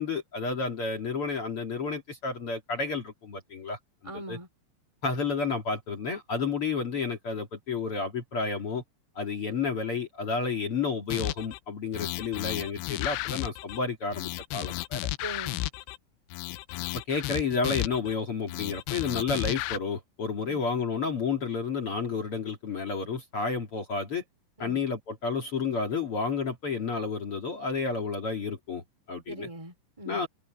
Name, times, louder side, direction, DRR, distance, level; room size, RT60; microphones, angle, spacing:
voice 1, 0.0-3.8 4.0-4.4 5.0-8.8 9.1-15.1 16.9-24.2 24.6-29.5 30.1-30.3, left 4 dB, 40° left, 2.2 m, -31 dB
voice 2, 4.0-4.5 12.0-12.1 15.2-15.7 20.5-20.6 24.6-24.8 29.3-30.2, right 1 dB, 5° right, 3.9 m, -41 dB
sound 1, 11.1-11.6 11.9-13.8 14.1-16.0 16.3-18.2 18.5-19.8, left 18 dB, 85° left, 2.5 m, -33 dB
open air
omnidirectional pair, 5.4 m